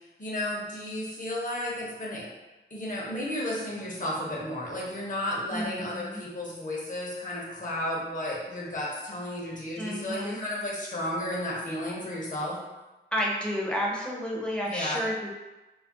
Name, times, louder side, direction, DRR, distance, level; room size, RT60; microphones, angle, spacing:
voice 1, 0.2-2.3 2.7-12.6 14.6-15.0, left 1 dB, 45° left, -5 dB, 0.8 m, -33 dB
voice 2, 5.5-6.2 9.8-10.4 13.1-15.3, equal, 5° left, -4 dB, 0.6 m, -31 dB
2.4 x 2.1 x 3.6 m, 1.1 s
wide cardioid pair, 110°, 19 cm